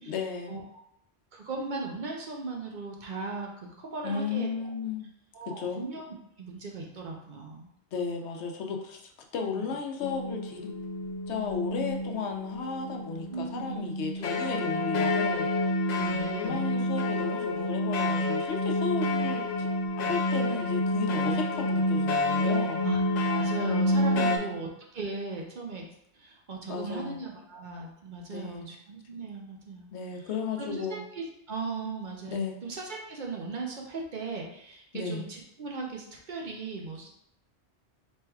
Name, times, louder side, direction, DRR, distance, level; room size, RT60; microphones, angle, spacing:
voice 1, 0.1-0.6 4.0-5.1 5.5-5.8 7.9-10.7 11.3-15.5 16.3-19.7 20.0-22.8 24.2-24.7 26.7-27.2 28.3-28.7 29.9-31.0 32.3-32.6 34.9-35.2, left 5 dB, 90° left, 2 dB, 0.9 m, -34 dB
voice 2, 1.3-4.5 5.3-6.1 6.4-7.7 9.5-9.7 13.3-14.5 15.9-16.6 19.0-19.1 20.0-20.1 21.2-21.4 22.8-25.8 26.1-29.9 30.6-37.1, right 3 dB, 50° right, -1 dB, 0.7 m, -38 dB
sound 1, 10.0-24.4, left 1 dB, 55° left, 0.5 m, -28 dB
4.5 x 3.2 x 2.3 m, 0.76 s
omnidirectional pair, 1.1 m